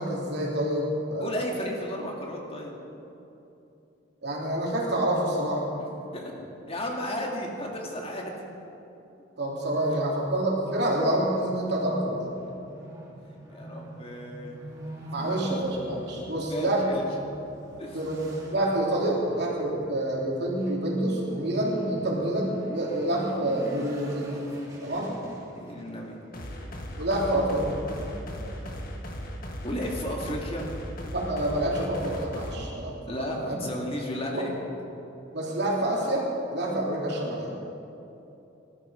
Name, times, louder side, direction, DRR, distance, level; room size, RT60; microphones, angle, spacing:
voice 1, 0.0-1.3 4.2-5.6 9.4-12.2 15.1-16.8 17.9-18.3 18.5-24.3 24.8-25.1 27.0-27.8 31.1-32.9 33.4-33.6 35.3-37.5, right 1 dB, 60° right, -3 dB, 3.2 m, -27 dB
voice 2, 1.2-2.7 6.1-8.3 9.9-10.0 13.3-14.6 15.2-15.6 16.5-17.0 17.8-18.0 25.5-26.2 29.6-30.7 33.1-34.5, left 1 dB, 30° left, 0 dB, 2.0 m, -34 dB
sound 1, 11.7-29.0, right 1 dB, 20° right, 3.3 m, -44 dB
sound 2, 26.3-32.5, equal, 50° left, 1.8 m, -37 dB
19.5 x 12.0 x 5.0 m, 2.9 s
head